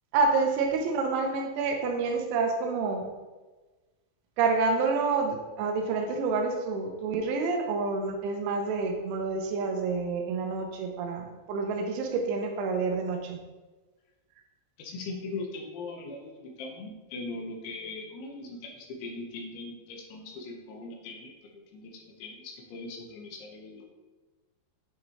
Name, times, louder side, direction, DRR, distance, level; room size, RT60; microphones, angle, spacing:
voice 1, 0.1-3.1 4.4-13.4, right 4 dB, 80° right, 4 dB, 2.9 m, -28 dB
voice 2, 14.8-23.9, left 3 dB, 80° left, 1 dB, 2.9 m, -40 dB
8.9 x 3.7 x 3.1 m, 1.2 s
omnidirectional pair, 5.6 m